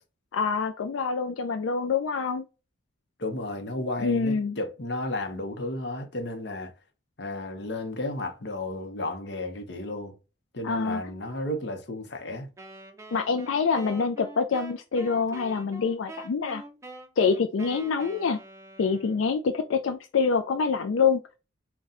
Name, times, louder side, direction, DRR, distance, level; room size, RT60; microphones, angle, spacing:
voice 1, 0.3-2.4 4.0-4.6 10.6-11.0 13.1-16.6 17.2-18.4 18.8-21.2, left 5 dB, 85° left, 0.4 m, -26 dB
voice 2, 3.2-6.7 7.2-10.1 10.5-12.5, left 1 dB, 60° left, 0.8 m, -33 dB
Wind instrument woodwind instrument, 12.6-19.4, right 2 dB, 15° right, 0.5 m, -45 dB
4.0 x 2.2 x 3.7 m
head